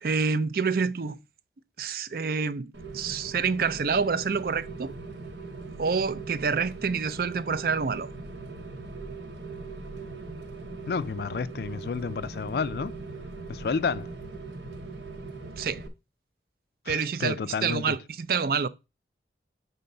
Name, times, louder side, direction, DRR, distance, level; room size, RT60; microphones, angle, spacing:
voice 1, 0.0-1.2 1.8-4.9 5.8-8.1 15.6-15.8 16.9-18.7, right 5 dB, 55° right, 0.4 m, -27 dB
Rain, 2.7-15.9, right 3 dB, 90° right, 1.1 m, -40 dB
voice 2, 10.9-12.9 13.5-14.1 16.9-18.0, left 5 dB, 60° left, 0.3 m, -30 dB
5.6 x 3.9 x 5.3 m
head